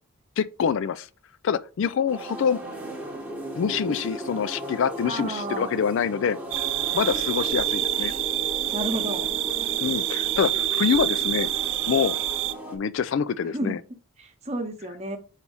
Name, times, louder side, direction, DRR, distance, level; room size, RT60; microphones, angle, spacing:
voice 1, 0.4-1.1 1.4-2.6 3.6-6.4 6.9-8.1 9.8-11.5 11.9-12.2 12.7-13.8, left 7 dB, 60° left, 0.3 m, -25 dB
sound 1, 2.1-12.8, right 1 dB, 10° right, 1.1 m, -36 dB
voice 2, 5.0-5.8 8.7-9.3 13.5-13.8 14.2-15.2, right 1 dB, 30° right, 1.0 m, -31 dB
sound 2, 6.5-12.5, right 14 dB, 60° right, 0.3 m, -27 dB
4.6 x 4.1 x 5.4 m
head